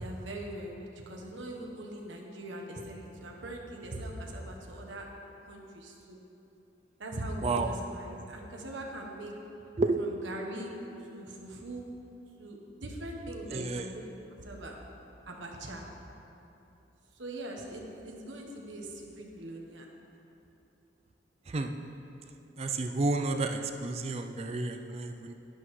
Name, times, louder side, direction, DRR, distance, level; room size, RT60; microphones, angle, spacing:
voice 1, 0.0-5.1 5.5-6.2 7.0-9.3 10.0-10.7 11.1-11.9 12.4-14.0 14.4-14.8 15.3-15.8 17.1-19.9, right 1 dB, 75° right, 0 dB, 1.1 m, -41 dB
voice 2, 13.5-13.9 21.5-21.7 22.6-25.3, right 3 dB, 30° right, 6 dB, 0.4 m, -31 dB
11.0 x 10.5 x 3.2 m, 2.9 s
head